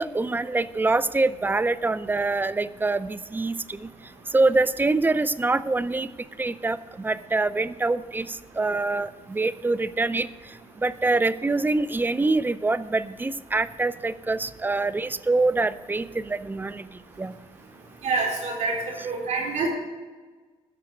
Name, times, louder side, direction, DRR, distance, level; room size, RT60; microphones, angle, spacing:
voice 1, 0.0-3.9 4.3-6.1 6.4-10.3 10.8-16.9 17.2-17.3, right 3 dB, 15° right, 15 dB, 0.5 m, -25 dB
voice 2, 18.0-19.7, right 4 dB, 65° right, -2 dB, 4.0 m, -27 dB
13.0 x 5.0 x 7.9 m, 1.4 s
cardioid pair, 90°, 13 cm